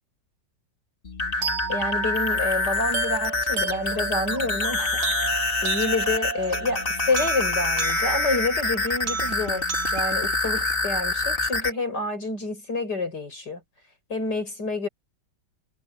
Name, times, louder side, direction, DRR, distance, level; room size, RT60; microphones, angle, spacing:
sound 1, 1.0-11.7, left 3 dB, 30° left, 2.6 m, -26 dB
voice 1, 1.4-5.4 5.6-9.7 9.9-13.6 14.1-14.9, left 2 dB, 70° left, 7.3 m, -28 dB
sound 2, 1.4-11.4, right 6 dB, 70° right, 2.3 m, -33 dB
omnidirectional pair, 1.9 m